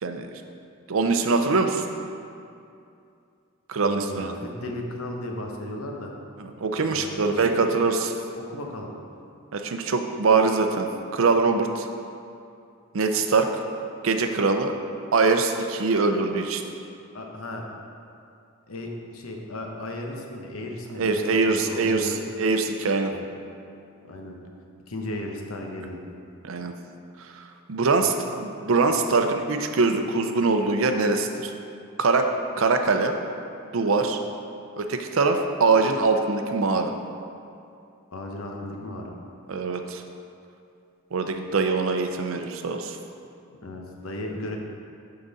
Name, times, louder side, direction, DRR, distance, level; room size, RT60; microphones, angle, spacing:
voice 1, 0.9-1.8 3.7-4.3 6.4-8.1 9.5-10.9 11.1-11.9 12.9-13.6 14.0-14.7 15.1-16.6 21.0-23.1 26.4-26.7 27.3-27.4 27.7-31.5 32.0-32.3 32.6-33.1 33.6-34.2 34.8-36.9 39.5-40.0 41.1-43.0, right 4 dB, 65° right, 6 dB, 0.5 m, -23 dB
voice 2, 3.8-6.1 6.9-7.5 8.3-8.9 17.1-17.6 18.7-22.2 23.1-23.3 24.1-24.4 24.9-26.0 38.1-39.1 43.6-44.6, left 1 dB, 75° left, 1 dB, 0.9 m, -35 dB
9.8 x 3.9 x 4.0 m, 2.5 s
head